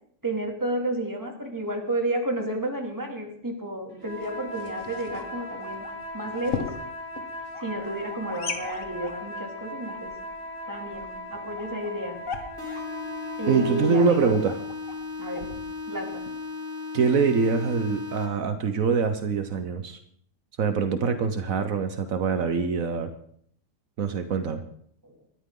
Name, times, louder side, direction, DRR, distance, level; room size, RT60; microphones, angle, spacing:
voice 1, 0.2-5.8 6.1-6.7 7.6-10.1 10.7-12.2 13.4-14.3 15.2-15.5 15.9-16.2 25.0-25.1, right 1 dB, 15° right, 1 dB, 2.7 m, -31 dB
sound 1, 3.9-14.2, left 1 dB, 35° right, 6.9 m, -38 dB
sound 2, 4.0-16.4, left 5 dB, 75° left, 2.0 m, -40 dB
sound 3, 12.6-18.6, left 4 dB, 40° left, 3.3 m, -36 dB
voice 2, 13.5-14.6 16.9-20.0 20.6-23.1 24.0-24.6, right 5 dB, 75° right, 8 dB, 1.4 m, -24 dB
20.5 x 13.0 x 3.8 m, 0.64 s
omnidirectional pair, 1.4 m